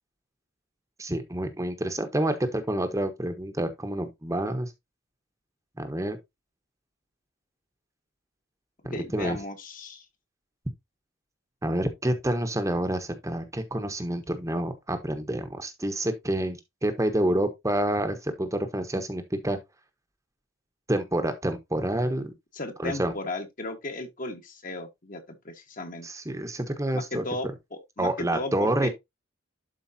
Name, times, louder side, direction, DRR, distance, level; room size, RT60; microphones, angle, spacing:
voice 1, 1.0-4.7 5.8-6.2 8.8-9.4 11.6-19.6 20.9-22.3 22.8-23.1 26.0-27.2 28.0-28.9, right 1 dB, 15° right, 1.1 m, -28 dB
voice 2, 8.9-10.0 22.5-26.1 26.9-28.9, left 2 dB, 40° left, 1.5 m, -35 dB
11.5 x 4.6 x 2.7 m
head